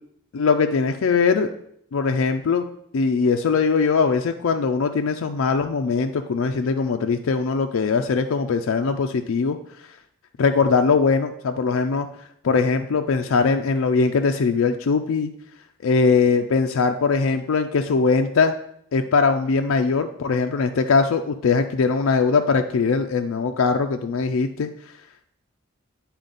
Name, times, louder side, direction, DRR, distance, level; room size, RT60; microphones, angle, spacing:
voice 1, 0.3-1.5 1.9-2.6 2.9-9.6 10.4-12.1 12.4-15.3 15.8-18.5 18.9-24.7, left 4 dB, 75° left, 5 dB, 0.4 m, -21 dB
8.9 x 4.3 x 3.9 m, 0.70 s
head